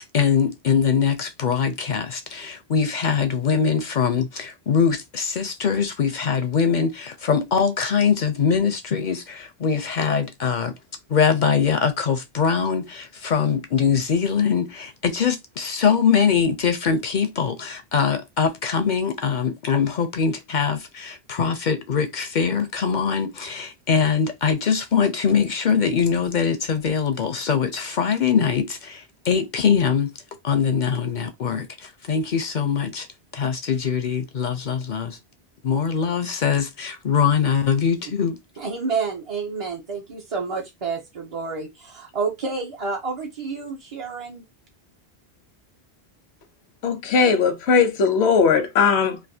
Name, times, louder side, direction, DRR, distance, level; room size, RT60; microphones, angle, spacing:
voice 1, 0.0-10.7 11.1-30.1 30.4-33.1 33.3-35.2 35.6-38.4, left 6 dB, 60° left, 0.5 m, -22 dB
voice 2, 38.6-44.4, right 4 dB, 40° right, 0.5 m, -29 dB
voice 3, 46.8-49.2, left 5 dB, 85° left, 0.9 m, -19 dB
3.2 x 2.5 x 2.6 m
omnidirectional pair, 1.1 m